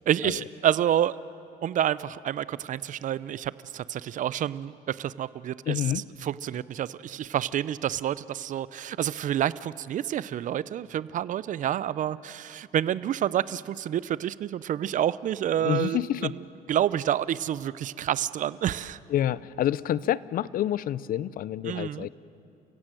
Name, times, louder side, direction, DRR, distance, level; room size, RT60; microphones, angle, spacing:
voice 1, 0.1-1.2 1.6-19.0 21.6-22.1, right 11 dB, 50° right, 18 dB, 0.6 m, -28 dB
voice 2, 5.7-6.0 15.6-16.3 19.1-22.1, left 11 dB, 55° left, 19 dB, 0.6 m, -28 dB
29.5 x 16.5 x 7.7 m, 2.6 s
cardioid pair, 110°, 17 cm